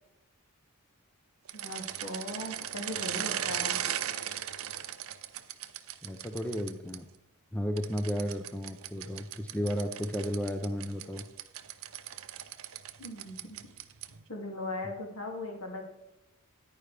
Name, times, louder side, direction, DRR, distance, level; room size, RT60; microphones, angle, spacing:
voice 1, 1.5-3.8 13.0-13.6 14.3-15.8, left 1 dB, 65° left, 1 dB, 2.4 m, -39 dB
sound 1, 1.5-7.0 7.8-14.2, right 10 dB, 70° right, 0.6 m, -38 dB
voice 2, 6.0-7.1 7.5-11.2, equal, 5° left, 6 dB, 0.5 m, -33 dB
10.0 x 9.3 x 3.4 m, 0.93 s
head